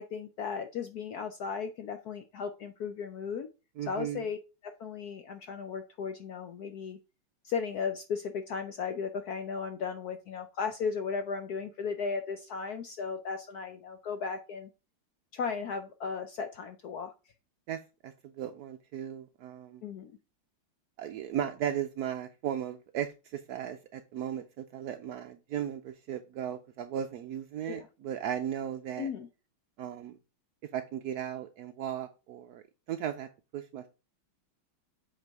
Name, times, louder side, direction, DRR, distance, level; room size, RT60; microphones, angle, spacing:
voice 1, 0.0-3.5 3.9-4.4 4.6-7.0 7.4-14.7 15.3-17.1 19.8-20.1 27.7-27.9 29.0-29.3, left 5 dB, 75° left, 8 dB, 0.9 m, -36 dB
voice 2, 3.8-4.2 17.7-19.8 21.0-29.1 29.8-30.2 30.7-32.6 32.9-33.3 33.5-33.9, right 10 dB, 80° right, 7 dB, 0.8 m, -36 dB
7.8 x 4.3 x 4.7 m, 0.30 s
omnidirectional pair, 2.3 m